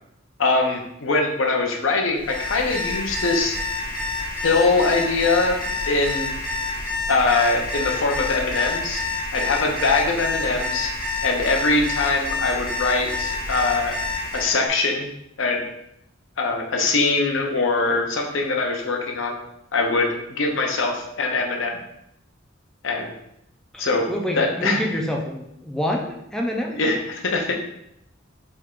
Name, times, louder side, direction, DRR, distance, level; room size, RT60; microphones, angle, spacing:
voice 1, 0.4-3.6 4.4-5.6 5.9-6.3 7.1-9.0 9.3-10.9 11.2-13.9 14.3-15.1 15.4-15.6 16.4-19.4 19.7-21.8 22.8-23.1 23.8-24.0 24.4-24.8 26.7-27.7, left 3 dB, 75° left, 2 dB, 0.7 m, -22 dB
Alarm, 2.1-14.6, left 3 dB, 45° left, 1.1 m, -28 dB
voice 2, 23.7-26.7, equal, 5° left, 0 dB, 0.4 m, -27 dB
4.5 x 3.5 x 2.4 m, 0.80 s
head